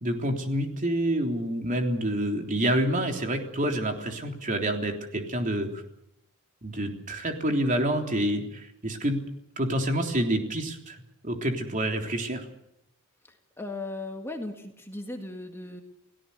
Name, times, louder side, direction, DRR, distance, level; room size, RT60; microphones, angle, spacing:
voice 1, 0.0-5.7 6.6-9.2 9.6-11.0 11.2-12.4, right 1 dB, 35° right, 3 dB, 3.5 m, -27 dB
voice 2, 13.6-15.8, left 2 dB, 10° left, 4 dB, 1.9 m, -37 dB
29.5 x 17.5 x 6.9 m, 0.80 s
head